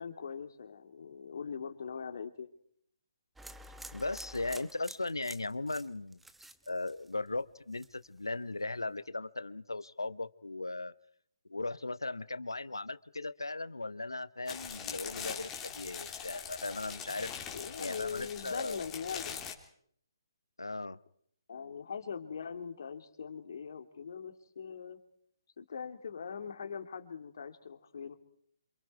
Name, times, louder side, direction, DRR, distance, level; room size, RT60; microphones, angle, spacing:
voice 1, 0.0-2.5 17.5-19.4 21.5-25.0 25.6-28.1, left 6 dB, 55° left, 7 dB, 2.6 m, -41 dB
sound 1, 3.4-7.4 7.7-8.2, right 1 dB, 5° right, 1.0 m, -50 dB
voice 2, 3.9-6.2 6.7-10.9 11.5-17.3 17.8-18.9 20.6-21.0, left 2 dB, 85° left, 17 dB, 1.0 m, -37 dB
sound 2, 14.5-19.5, left 7 dB, 15° left, 3.2 m, -42 dB
27.5 x 27.0 x 4.7 m, 0.65 s
figure-of-eight pair, 140°, 2 cm